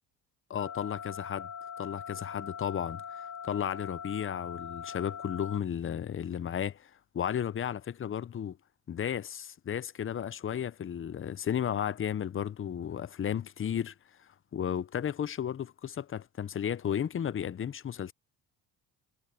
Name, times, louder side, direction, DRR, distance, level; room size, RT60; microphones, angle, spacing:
voice 1, 0.5-1.5 1.8-8.6 8.9-18.1, left 9 dB, 30° left, 0.7 m, -34 dB
sound 1, 0.6-5.6, left 7 dB, 50° left, 2.5 m, -42 dB
cardioid pair, 90°, 39 cm